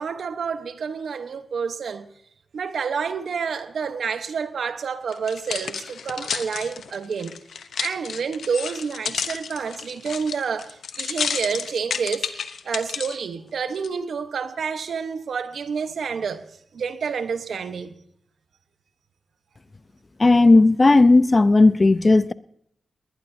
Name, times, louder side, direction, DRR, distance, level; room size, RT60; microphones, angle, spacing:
voice 1, 0.0-2.1 2.5-7.3 7.8-12.3 12.6-16.4 16.7-17.9, right 6 dB, 80° right, 1.1 m, -29 dB
sound 1, 5.1-13.2 13.7-13.9, left 6 dB, 85° left, 0.9 m, -31 dB
voice 2, 20.2-22.3, left 3 dB, 40° left, 0.7 m, -15 dB
19.5 x 19.5 x 2.8 m
cardioid pair, 40°, 0 cm